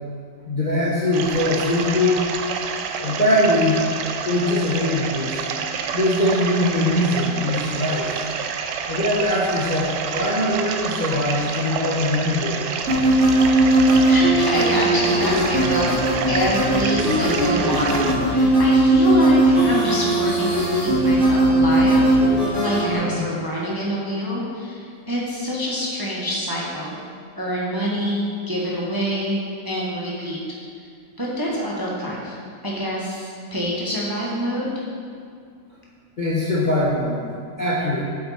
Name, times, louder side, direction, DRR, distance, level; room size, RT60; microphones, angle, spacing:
voice 1, 0.4-2.2 3.0-3.8 4.2-5.4 5.9-8.3 8.9-12.6 22.9-23.2 36.2-37.2 37.6-38.0, left 1 dB, 35° left, -6 dB, 0.9 m, -22 dB
sound 1, 1.1-18.2, right 6 dB, 75° right, 1.2 m, -28 dB
sound 2, 12.9-22.9, right 1 dB, 45° right, 2.5 m, -18 dB
voice 2, 14.0-15.9 16.3-18.0 18.3-27.0 27.4-30.4 31.2-32.3 32.6-34.7, equal, 15° right, -5 dB, 1.0 m, -26 dB
7.9 x 7.6 x 4.2 m, 2.2 s
omnidirectional pair, 2.0 m